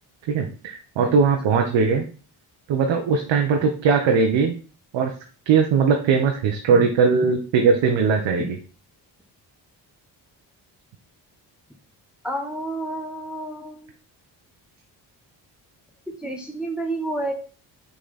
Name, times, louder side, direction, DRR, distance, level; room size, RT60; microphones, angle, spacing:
voice 1, 0.3-2.0 2.7-4.5 4.9-5.1 5.5-8.6, right 5 dB, 80° right, 3 dB, 1.1 m, -20 dB
voice 2, 12.2-13.9 16.2-17.3, right 1 dB, ahead, 1 dB, 1.3 m, -30 dB
6.1 x 4.3 x 4.1 m, 0.39 s
cardioid pair, 70°, 44 cm